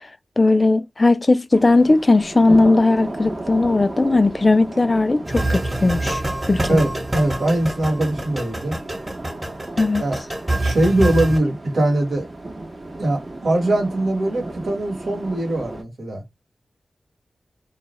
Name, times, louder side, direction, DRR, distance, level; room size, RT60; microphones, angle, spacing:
voice 1, 0.4-6.2 6.5-6.8 9.8-10.0, left 2 dB, 40° left, 0.3 m, -17 dB
sound 1, 1.5-15.8, right 2 dB, 45° right, 0.7 m, -34 dB
sound 2, 5.3-11.4, right 1 dB, 30° right, 1.0 m, -26 dB
voice 2, 6.7-8.8 10.0-10.2 10.6-12.3 13.0-16.2, right 1 dB, 80° right, 1.0 m, -21 dB
2.3 x 2.0 x 2.9 m
cardioid pair, 45°, 0 cm